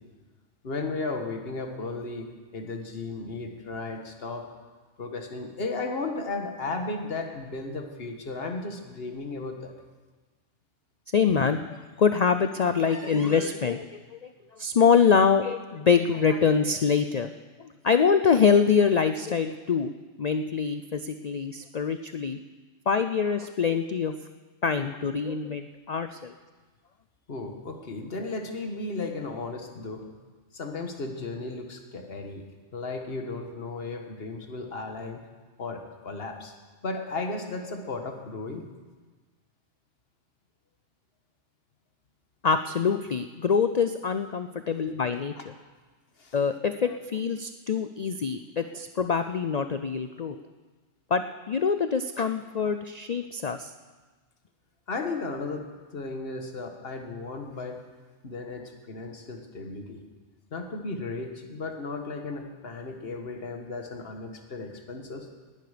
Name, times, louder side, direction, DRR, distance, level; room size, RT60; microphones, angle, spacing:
voice 1, 0.6-4.4 5.0-9.7 27.3-30.0 30.5-32.4 32.7-35.2 35.6-36.5 36.8-38.6 46.2-46.3 54.9-57.8 58.2-60.0 60.5-65.3, left 3 dB, 50° left, 4 dB, 1.6 m, -35 dB
voice 2, 11.1-17.3 17.6-19.9 20.2-22.4 22.9-24.1 24.6-26.3 42.4-45.3 46.3-50.4 51.1-53.7, left 6 dB, 70° left, 9 dB, 0.3 m, -25 dB
19.0 x 11.0 x 5.0 m, 1.3 s
omnidirectional pair, 1.4 m